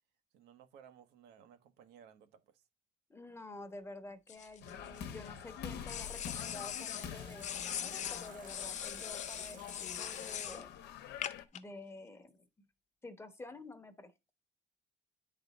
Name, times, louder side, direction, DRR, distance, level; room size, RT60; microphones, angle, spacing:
voice 1, 0.3-2.6, right 8 dB, 80° right, 1.1 m, -59 dB
voice 2, 3.1-10.7 11.5-12.7 13.0-14.1, left 2 dB, 15° left, 0.9 m, -50 dB
putting on deodourant, 4.3-5.3 5.9-7.1 7.4-10.6 11.2-11.6, left 9 dB, 45° left, 0.5 m, -41 dB
sound 1, 4.6-11.5, left 9 dB, 80° left, 1.0 m, -46 dB
sound 2, 4.7-10.5, right 8 dB, 50° right, 0.8 m, -58 dB
9.4 x 4.1 x 4.0 m
cardioid pair, 110°, 17 cm